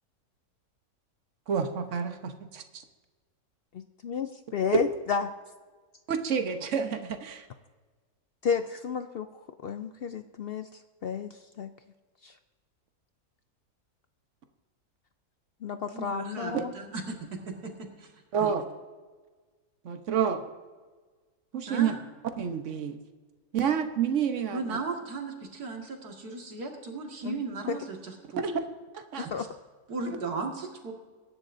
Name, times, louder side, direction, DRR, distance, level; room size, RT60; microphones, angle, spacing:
voice 1, 1.5-2.6 6.1-7.5 18.3-18.6 19.8-20.4 21.5-21.9 22.4-23.0 23.5-24.8 28.4-28.5 28.9-29.3, right 7 dB, 55° right, 7 dB, 1.3 m, -29 dB
voice 2, 4.1-5.3 8.4-11.7 12.2-12.3 15.6-16.7 27.2-27.4 27.7-27.8 29.3-29.5, left 6 dB, 75° left, 9 dB, 0.5 m, -32 dB
voice 3, 15.9-17.1 17.6-17.7 18.0-18.1 18.4-18.5 21.7-22.0 24.5-28.4 29.1-29.5 29.9-30.9, right 4 dB, 85° right, 1 dB, 2.4 m, -36 dB
22.5 x 11.0 x 2.6 m, 1.4 s
omnidirectional pair, 1.6 m